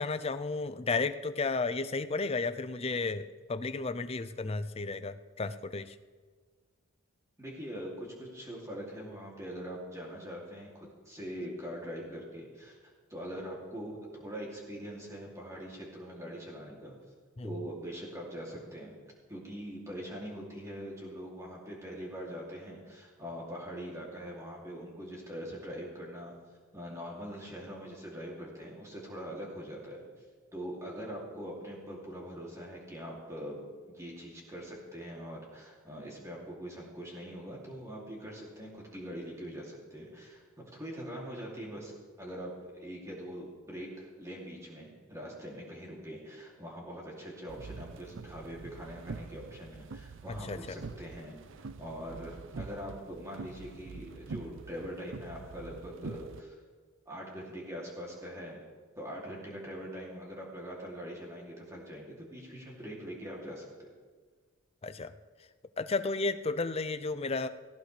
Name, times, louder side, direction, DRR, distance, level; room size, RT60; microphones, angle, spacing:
voice 1, 0.0-6.0 17.4-17.7 50.3-50.8 64.8-65.1 65.8-67.5, left 3 dB, 25° left, 11 dB, 0.4 m, -33 dB
voice 2, 7.4-16.9 17.4-18.9 19.3-26.3 26.7-30.0 30.5-41.9 42.2-56.5 57.1-58.6 59.0-63.9, equal, 15° right, -3 dB, 2.7 m, -43 dB
sound 1, 47.5-56.4, right 4 dB, 55° right, 0.4 m, -45 dB
17.5 x 15.5 x 3.3 m, 1.5 s
head